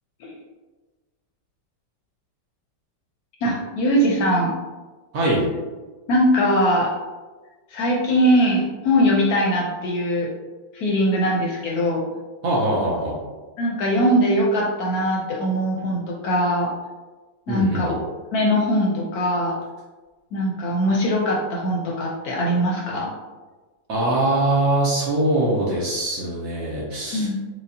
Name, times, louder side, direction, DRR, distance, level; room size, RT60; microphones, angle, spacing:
voice 1, 3.4-4.5 6.1-6.9 7.7-10.3 10.7-12.0 13.6-16.7 17.5-18.0 18.3-19.6 20.3-23.1 27.1-27.4, equal, 70° left, -2 dB, 1.0 m, -21 dB
voice 2, 5.1-5.5 12.4-13.1 17.5-17.9 23.9-27.3, right 1 dB, 65° right, -4 dB, 0.9 m, -22 dB
4.9 x 2.3 x 2.6 m, 1.3 s
omnidirectional pair, 1.9 m